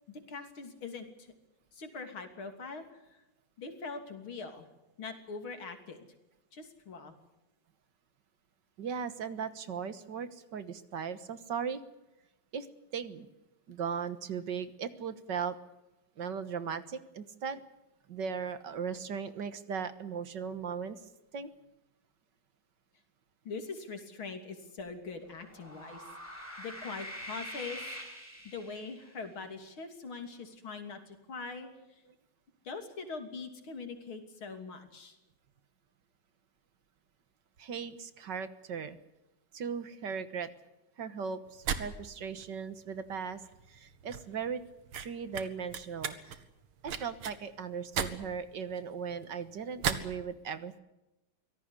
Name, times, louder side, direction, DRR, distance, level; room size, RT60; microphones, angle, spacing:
voice 1, 0.1-1.3 1.7-3.2 3.6-4.7 5.0-6.0 6.5-7.1 23.5-27.8 28.5-31.7 32.7-35.2, left 4 dB, 80° left, 6 dB, 3.8 m, -42 dB
voice 2, 8.8-11.8 12.5-12.7 12.9-13.3 13.7-15.6 16.2-17.6 18.1-21.0 21.3-21.5 37.6-39.0 39.5-40.5 41.0-43.4 43.7-44.6 45.0-46.4 46.8-50.8, right 6 dB, 60° right, 12 dB, 1.9 m, -38 dB
sound 1, 25.3-29.1, equal, 5° left, 7.7 m, -44 dB
sound 2, 41.5-50.1, right 7 dB, 85° right, 2.4 m, -38 dB
24.5 x 17.5 x 8.2 m, 0.98 s
omnidirectional pair, 2.3 m